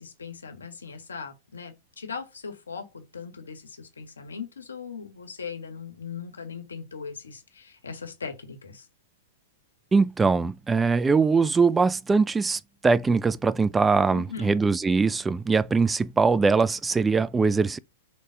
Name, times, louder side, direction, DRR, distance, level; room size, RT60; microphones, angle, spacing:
voice 1, 0.0-8.9 14.1-14.5, left 6 dB, 90° left, 1.6 m, -39 dB
voice 2, 9.9-17.8, right 4 dB, 15° right, 0.4 m, -22 dB
5.2 x 4.1 x 5.0 m
hypercardioid pair, 110°, 0 cm